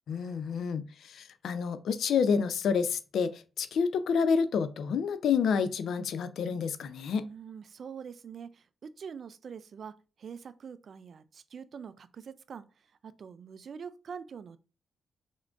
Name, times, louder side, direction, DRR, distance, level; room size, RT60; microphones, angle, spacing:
voice 1, 0.1-7.3, left 6 dB, 75° left, 0.3 m, -29 dB
voice 2, 7.2-12.6 13.0-14.6, right 6 dB, 60° right, 0.3 m, -44 dB
3.6 x 3.6 x 2.4 m
cardioid pair, 70°, 0 cm